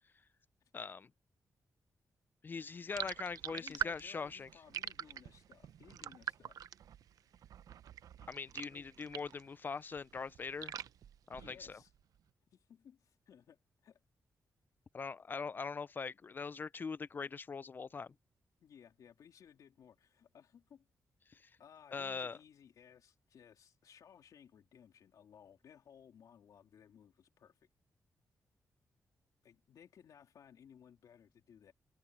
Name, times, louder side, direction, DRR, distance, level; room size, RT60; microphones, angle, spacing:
voice 1, 0.7-1.1 2.4-4.5 8.3-10.7 11.3-11.8 14.9-18.1 21.3-21.5 21.9-22.4, left 5 dB, 35° left, 0.3 m, -42 dB
sound 1, 2.9-9.5 9.8-11.9, right 10 dB, 85° right, 0.5 m, -44 dB
voice 2, 3.5-6.6 8.7-9.1 11.3-11.9 12.5-14.0 18.6-20.9 21.6-27.6 29.4-31.7, left 8 dB, 75° left, 3.5 m, -60 dB
wide cardioid pair, 145°, 6 cm